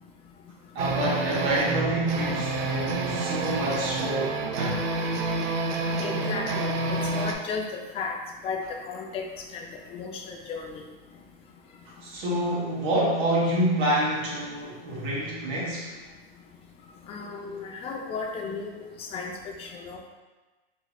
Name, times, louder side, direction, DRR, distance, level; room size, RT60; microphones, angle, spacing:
voice 1, 0.7-4.9 12.0-15.9, right 1 dB, 40° right, -5 dB, 1.3 m, -27 dB
sound 1, 0.8-7.3, right 3 dB, 75° right, 0.7 m, -28 dB
voice 2, 6.0-8.2 8.4-8.6 8.9-9.3 9.5-9.6 9.9-10.8 17.1-19.3 19.6-20.0, left 5 dB, 20° left, 2 dB, 0.4 m, -34 dB
4.0 x 3.1 x 2.9 m, 1.2 s
hypercardioid pair, 130°, 30 cm